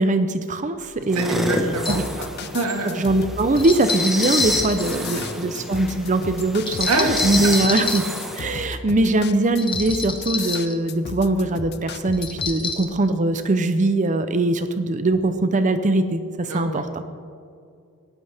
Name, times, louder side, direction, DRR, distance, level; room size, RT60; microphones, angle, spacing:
voice 1, 0.0-1.4 1.9-2.0 2.8-8.1 8.3-16.9, right 2 dB, 35° right, 10 dB, 0.6 m, -21 dB
sound 1, 0.8-0.9 1.7-2.1 3.6-5.4 6.7-8.2 9.6-10.8 12.1-12.9, left 4 dB, 20° left, 1.2 m, -27 dB
sound 2, 1.1-8.7, equal, ahead, 1.3 m, -30 dB
voice 2, 1.1-2.3 2.5-2.9 4.9-5.3 6.9-7.1 7.4-7.6 16.5-17.0, right 3 dB, 80° right, 2 dB, 2.0 m, -27 dB
sound 3, 1.9-12.6, left 5 dB, 50° left, 0.6 m, -35 dB
18.5 x 12.0 x 3.5 m, 2.4 s
head